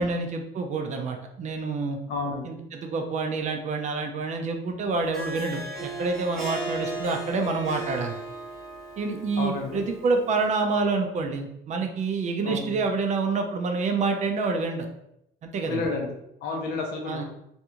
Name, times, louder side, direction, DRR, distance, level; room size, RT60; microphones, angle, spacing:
voice 1, 0.0-2.0 2.4-8.2 9.0-14.9 15.4-15.8 17.1-17.2, right 4 dB, 45° right, 4 dB, 0.5 m, -27 dB
voice 2, 2.1-2.5 9.4-9.8 12.4-12.7 15.6-16.1 16.4-17.2, left 3 dB, 70° left, 1 dB, 0.7 m, -30 dB
Harp, 5.0-10.4, right 2 dB, ahead, 1.0 m, -36 dB
2.6 x 2.3 x 2.8 m, 0.80 s
cardioid pair, 110°, 17 cm